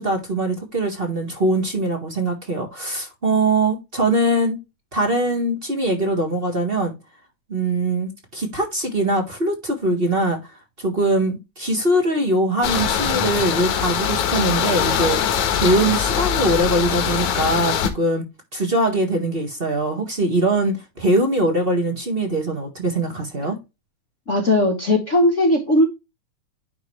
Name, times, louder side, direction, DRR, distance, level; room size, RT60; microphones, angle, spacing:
voice 1, 0.0-4.6 4.9-6.9 7.5-10.4 10.8-15.2 15.5-18.2 18.5-23.6, right 1 dB, 25° right, 1.2 m, -22 dB
sound 1, 12.6-17.9, left 8 dB, 80° left, 2.7 m, -22 dB
voice 2, 24.3-25.8, left 1 dB, 55° left, 0.8 m, -18 dB
10.5 x 3.8 x 3.2 m
omnidirectional pair, 3.4 m